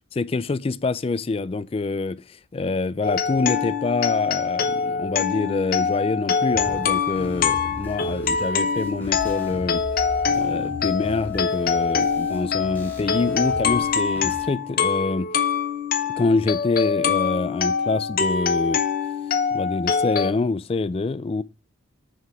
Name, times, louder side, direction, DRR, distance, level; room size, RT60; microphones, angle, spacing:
voice 1, 0.1-9.8 10.3-15.3 16.1-18.8 19.5-21.4, left 3 dB, 30° left, 0.3 m, -26 dB
sound 1, 3.0-20.3, left 6 dB, 45° left, 0.7 m, -24 dB
sound 2, 6.5-14.5, left 1 dB, 10° left, 1.4 m, -38 dB
6.4 x 4.7 x 4.8 m
head